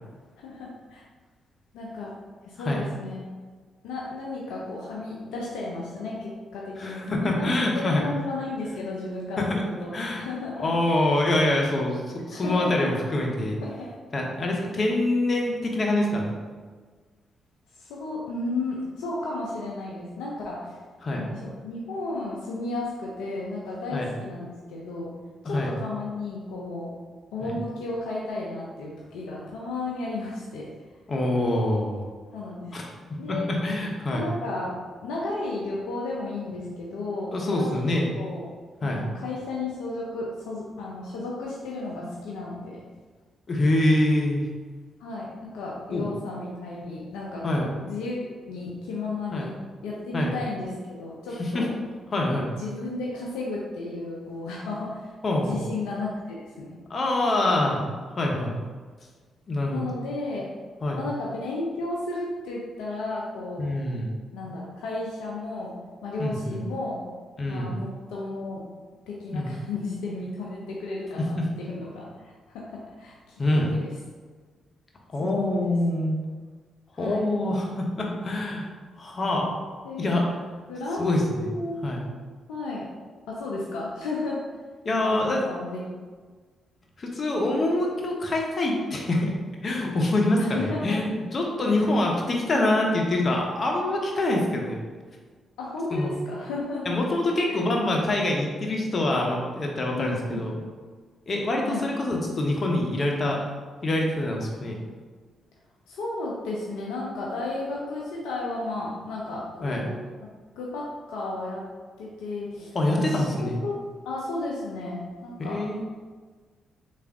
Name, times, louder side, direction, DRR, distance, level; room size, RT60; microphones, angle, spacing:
voice 1, 0.4-1.0 1.7-2.2 2.4-3.2 3.8-11.1 12.3-12.9 13.6-13.9 17.8-20.8 21.1-25.1 25.4-27.0 27.3-30.7 32.3-32.8 33.2-33.5 34.1-37.8 38.1-38.5 38.8-42.9 45.0-51.8 52.6-56.8 59.7-60.5 61.0-63.7 64.3-65.8 66.0-67.1 67.5-68.6 69.1-73.9 75.2-75.6 76.9-77.3 79.8-80.1 80.7-81.9 82.5-82.9 83.3-84.4 85.0-85.8 90.4-91.0 91.7-92.1 95.6-97.0 97.5-97.6 100.0-100.5 101.7-101.9 105.9-110.0 110.6-111.7 112.0-113.8 114.1-115.6, left 2 dB, 75° left, -3 dB, 0.4 m, -33 dB
voice 2, 6.8-8.0 9.4-9.5 9.9-10.3 10.6-12.0 12.3-13.6 14.1-16.3 21.0-21.2 23.9-24.1 25.4-25.7 27.4-27.5 31.1-32.0 32.7-32.8 33.3-34.2 37.3-38.1 38.8-39.0 43.5-44.4 45.9-46.1 47.4-47.7 49.3-49.5 50.1-50.3 51.4-51.7 52.1-52.4 55.2-55.6 56.9-58.5 59.5-59.9 60.8-61.0 63.6-64.1 66.2-66.6 67.4-67.8 69.3-69.6 71.4-71.5 73.4-73.7 75.1-76.1 77.0-78.7 79.0-79.5 80.0-80.2 81.0-81.5 81.8-82.0 84.8-85.4 87.0-89.3 89.6-94.8 95.9-96.1 96.9-100.6 101.3-103.4 103.8-104.8 109.6-109.8 112.7-113.6 115.4-115.8, left 1 dB, 45° left, 0 dB, 0.7 m, -25 dB
3.4 x 2.4 x 3.4 m, 1.5 s
hypercardioid pair, 45°, 0 cm